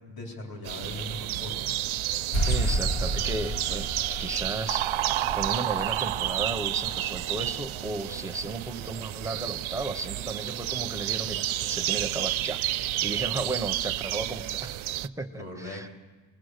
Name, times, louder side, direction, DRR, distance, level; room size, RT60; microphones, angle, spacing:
voice 1, 0.1-1.7 15.4-15.9, left 2 dB, 50° left, 0 dB, 3.8 m, -39 dB
sound 1, 0.7-15.1, right 14 dB, 90° right, 0.6 m, -31 dB
sound 2, 2.3-9.4, right 1 dB, 85° left, 2.3 m, -33 dB
voice 2, 2.5-4.9 5.3-12.6 13.0-15.9, right 2 dB, 5° right, 7 dB, 0.6 m, -34 dB
26.0 x 19.5 x 6.5 m, 1.3 s
wide cardioid pair, 175°, 47 cm